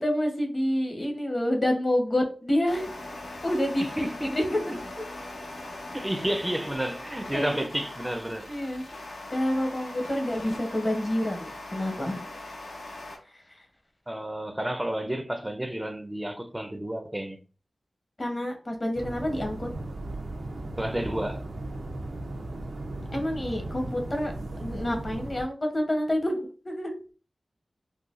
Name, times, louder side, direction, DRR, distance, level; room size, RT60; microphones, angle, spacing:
voice 1, 0.0-2.9 3.4-3.8 4.4-4.6 7.3-7.6 8.5-8.8 9.3-12.2 18.2-19.7 23.1-26.9, left 1 dB, 35° left, 0.8 m, -28 dB
sound 1, 2.7-13.2, left 2 dB, 85° left, 0.9 m, -40 dB
voice 2, 3.8-4.4 5.9-8.5 14.1-17.4 20.8-21.4, right 1 dB, 10° right, 0.5 m, -31 dB
sound 2, 18.9-25.4, right 2 dB, 80° right, 0.5 m, -36 dB
3.8 x 2.3 x 2.4 m
wide cardioid pair, 90°, 0 cm